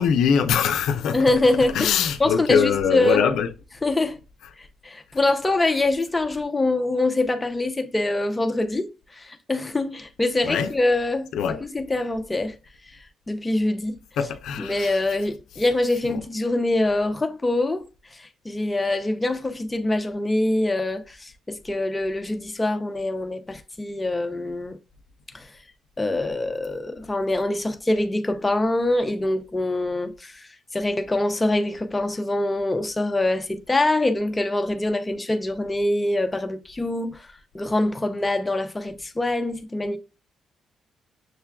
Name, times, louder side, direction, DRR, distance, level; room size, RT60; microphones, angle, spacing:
voice 1, 0.0-1.2 1.7-3.5 10.4-10.7 11.3-11.6 14.2-14.9, left 7 dB, 80° left, 0.4 m, -22 dB
voice 2, 1.1-1.9 2.2-3.2 3.8-4.2 4.6-14.0 14.6-24.8 25.3-25.6 26.0-40.0, left 2 dB, 15° left, 0.5 m, -24 dB
6.4 x 2.2 x 2.2 m
cardioid pair, 90°, 0 cm